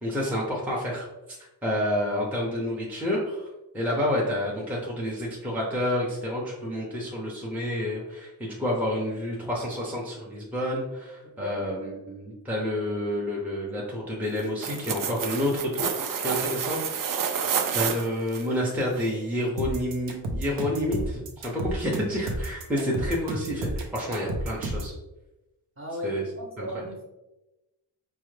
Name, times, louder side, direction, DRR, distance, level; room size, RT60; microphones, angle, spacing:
voice 1, 0.0-1.1 1.6-3.5 3.7-17.3 17.7-24.9 26.0-26.2 26.6-26.8, left 1 dB, 5° right, -4 dB, 0.5 m, -29 dB
voice 2, 11.2-11.7 22.7-22.9 24.0-24.1 25.8-27.0, left 1 dB, 30° right, 0 dB, 0.9 m, -37 dB
sound 1, 14.4-18.4 19.0-19.1, right 7 dB, 55° right, 0.4 m, -29 dB
sound 2, 19.6-24.9, right 1 dB, 85° right, 0.7 m, -31 dB
4.5 x 2.2 x 3.1 m, 1.0 s
wide cardioid pair, 130°, 42 cm